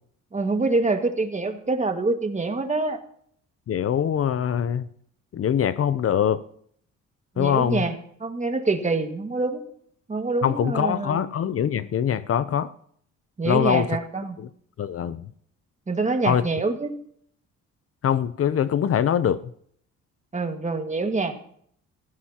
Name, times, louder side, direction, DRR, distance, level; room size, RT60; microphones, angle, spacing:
voice 1, 0.3-3.0 7.4-9.6 10.1-11.2 13.4-14.4 15.9-16.9 20.3-21.3, right 3 dB, 25° right, 5 dB, 1.8 m, -25 dB
voice 2, 3.7-4.8 5.3-6.4 7.4-7.8 10.4-12.7 13.4-13.9 14.4-14.5 14.8-15.2 16.2-16.4 18.0-19.4, left 9 dB, 50° left, 15 dB, 0.6 m, -23 dB
18.0 x 15.0 x 2.9 m, 0.65 s
cardioid pair, 90°, 30 cm